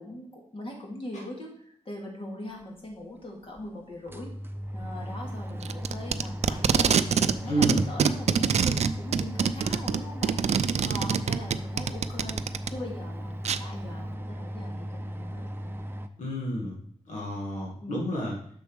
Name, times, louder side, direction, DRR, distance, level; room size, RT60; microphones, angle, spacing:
voice 1, 0.0-4.3 4.7-10.4 10.8-12.4 12.7-15.8 17.8-18.1, left 1 dB, 50° left, -2 dB, 2.6 m, -41 dB
sound 1, 2.9-3.0 3.6-3.7 3.9-16.1, equal, 20° right, 0.7 m, -37 dB
Packing tape duct tape, 5.6-7.4 7.6-12.7 13.5-13.6, right 7 dB, 65° right, 0.4 m, -24 dB
voice 2, 7.5-7.9 16.2-16.8 17.1-18.4, right 1 dB, 85° left, -3 dB, 1.8 m, -30 dB
7.0 x 6.3 x 4.6 m, 0.63 s
cardioid pair, 80°, 12 cm